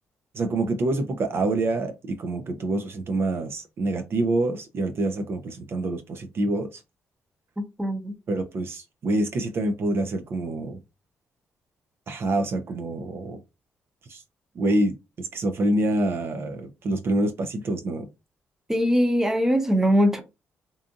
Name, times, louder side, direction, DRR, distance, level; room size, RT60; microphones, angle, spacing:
voice 1, 0.3-6.8 8.3-10.8 12.1-13.4 14.1-14.2 14.6-18.1, right 2 dB, 50° right, 0.4 m, -26 dB
voice 2, 7.6-8.1 18.7-20.2, equal, 10° right, 0.7 m, -22 dB
2.6 x 2.5 x 2.4 m
cardioid pair, 85°, 5 cm